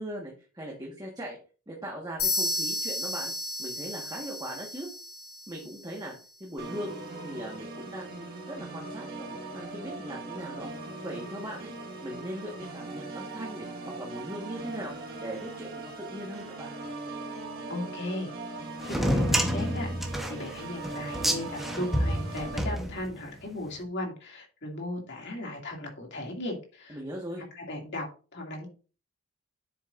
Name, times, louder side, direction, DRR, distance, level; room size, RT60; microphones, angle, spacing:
voice 1, 0.0-1.4 1.7-3.3 3.6-4.9 5.5-6.1 6.4-6.9 7.2-10.7 11.0-11.7 12.0-16.7 26.9-27.4, equal, 15° right, -1 dB, 1.4 m, -39 dB
sound 1, 2.2-6.0, left 2 dB, 80° left, 3.0 m, -33 dB
Organ, 6.6-22.6, right 3 dB, 45° right, 1.5 m, -40 dB
voice 2, 17.7-19.9 20.3-27.0 27.6-28.7, left 1 dB, 50° left, 0 dB, 2.4 m, -37 dB
sound 2, 18.8-23.4, equal, ahead, 0.9 m, -28 dB
9.7 x 7.8 x 2.5 m, 0.36 s
head